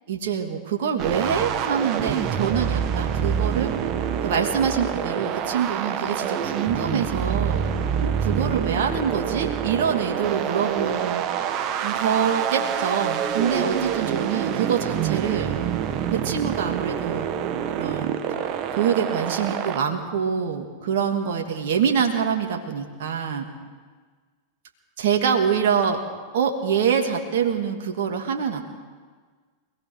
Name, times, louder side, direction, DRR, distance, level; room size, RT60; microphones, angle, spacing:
voice 1, 0.1-3.7 4.2-7.6 8.0-11.2 11.8-15.5 16.1-17.5 17.7-18.2 18.7-23.5 25.0-26.0 26.3-28.6, right 7 dB, 55° right, 2 dB, 2.8 m, -25 dB
sound 1, 1.0-19.8, right 8 dB, 35° right, 1.7 m, -26 dB
27.0 x 18.0 x 6.5 m, 1.5 s
figure-of-eight pair, 90°, 0 cm